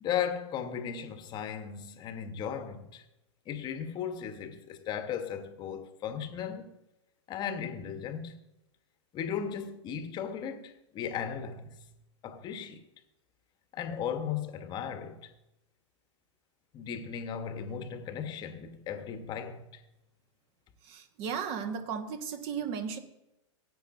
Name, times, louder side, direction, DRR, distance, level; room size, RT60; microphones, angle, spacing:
voice 1, 0.0-3.0 3.5-6.7 7.3-8.4 9.1-11.8 12.2-12.8 13.7-15.3 16.7-19.8, left 8 dB, 30° left, 1.2 m, -36 dB
voice 2, 20.8-23.0, right 7 dB, 35° right, 1.5 m, -35 dB
17.0 x 8.9 x 2.7 m
figure-of-eight pair, 110°, 16 cm